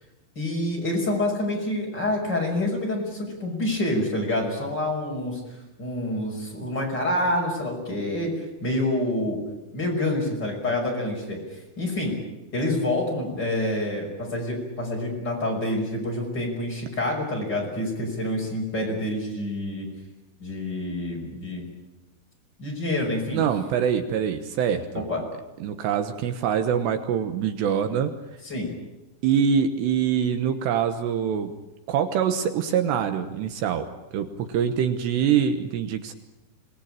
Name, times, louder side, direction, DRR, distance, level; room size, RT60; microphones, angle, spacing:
voice 1, 0.4-5.4 5.8-8.3 8.6-9.4 9.7-11.4 11.8-12.1 12.5-19.9 20.4-21.7 22.6-23.4 25.1-25.2 28.4-28.7, left 1 dB, 20° left, 0 dB, 6.2 m, -27 dB
voice 2, 23.3-25.0 25.6-28.1 29.2-31.5 31.9-36.1, right 8 dB, 75° right, 8 dB, 3.2 m, -24 dB
26.5 x 19.5 x 9.0 m, 1.0 s
omnidirectional pair, 5.2 m